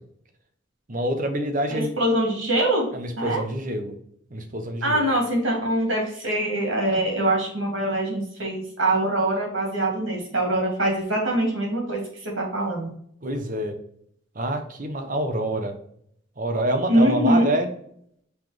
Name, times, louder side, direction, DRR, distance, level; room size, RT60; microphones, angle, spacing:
voice 1, 0.9-1.9 2.9-3.9 4.3-5.1 13.2-13.7 14.3-15.8 16.4-17.7, right 1 dB, 45° right, 6 dB, 1.0 m, -26 dB
voice 2, 1.7-2.9 3.2-3.4 4.8-12.9 16.9-17.5, right 1 dB, 80° right, -1 dB, 2.8 m, -23 dB
5.6 x 3.9 x 5.1 m, 0.67 s
head